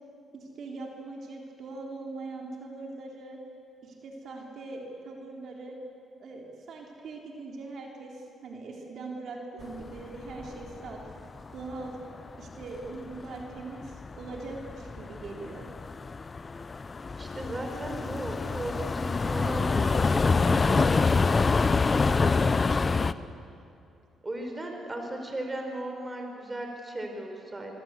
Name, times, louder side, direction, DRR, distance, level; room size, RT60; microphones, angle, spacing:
voice 1, 0.3-3.4 3.8-5.8 6.2-11.0 11.5-12.0 12.4-15.7, right 3 dB, 65° right, 0 dB, 3.7 m, -41 dB
sound 1, 9.6-11.9 12.1-23.1, left 4 dB, 30° left, 0.7 m, -26 dB
voice 2, 17.2-21.5 22.0-23.3 24.2-27.7, right 1 dB, 20° right, 3 dB, 4.9 m, -37 dB
25.0 x 23.5 x 8.4 m, 2.5 s
cardioid pair, 90°, 0 cm